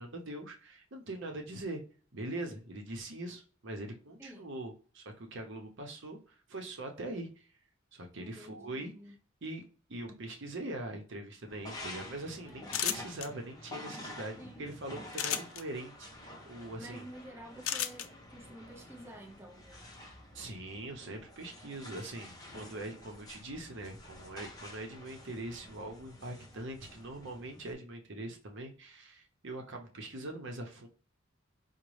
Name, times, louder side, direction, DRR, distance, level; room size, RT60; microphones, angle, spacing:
voice 1, 0.0-1.8 2.1-7.5 7.9-8.9 9.4-9.6 9.9-17.1 20.3-30.9, right 1 dB, 65° right, 0.8 m, -42 dB
voice 2, 4.2-4.5 8.2-9.2 12.4-12.9 14.4-14.7 16.8-19.9 26.1-26.2, right 1 dB, 15° right, 0.7 m, -50 dB
sound 1, 11.5-27.7, left 1 dB, 20° left, 0.8 m, -49 dB
sound 2, 12.7-13.3 15.1-15.6 17.6-18.1, left 10 dB, 75° left, 0.4 m, -32 dB
5.0 x 2.1 x 3.1 m
head